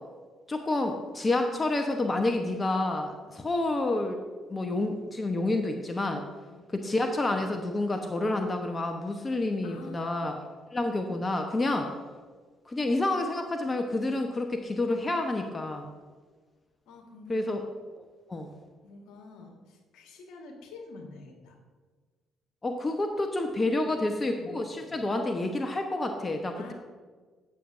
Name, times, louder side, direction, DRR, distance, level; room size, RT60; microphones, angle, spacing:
voice 1, 0.5-4.2 4.5-6.2 6.7-10.4 10.7-11.9 12.7-15.9 17.3-17.6 18.3-18.5 22.6-26.6, left 2 dB, 30° left, 5 dB, 0.9 m, -29 dB
voice 2, 9.6-10.3 16.9-17.6 18.8-21.6 23.7-23.9 24.3-25.0 26.6-26.7, left 3 dB, 75° left, 2 dB, 1.7 m, -48 dB
16.5 x 6.9 x 2.6 m, 1.4 s
hypercardioid pair, 55°, 0 cm